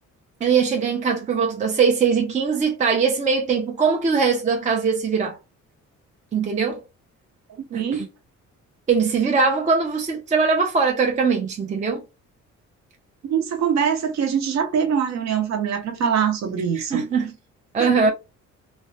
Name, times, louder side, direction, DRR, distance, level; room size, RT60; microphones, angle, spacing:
voice 1, 0.4-5.4 6.3-6.8 7.7-8.1 8.9-12.0 16.8-17.3 17.7-18.1, right 5 dB, 25° right, 0.4 m, -21 dB
voice 2, 7.6-8.1 13.2-17.1 17.8-18.1, right 7 dB, 65° right, 0.7 m, -23 dB
2.3 x 2.0 x 2.6 m
cardioid pair, 90°, 30 cm